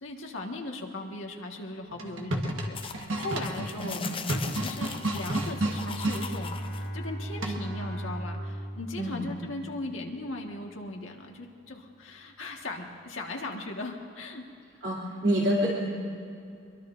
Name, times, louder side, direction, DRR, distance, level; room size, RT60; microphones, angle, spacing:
voice 1, 0.0-4.0 4.3-6.6 6.9-14.4, left 2 dB, 80° left, 1 dB, 1.6 m, -38 dB
sound 1, 1.9-6.2 7.4-7.8, right 1 dB, 80° right, 1.4 m, -31 dB
sound 2, 2.7-6.9, left 6 dB, 25° left, 0.5 m, -40 dB
voice 2, 3.8-4.1 9.0-9.3 14.8-15.9, equal, 60° right, -5 dB, 2.7 m, -27 dB
Bowed string instrument, 4.7-10.0, equal, 5° right, 4.6 m, -38 dB
24.0 x 22.5 x 2.6 m, 2.5 s
head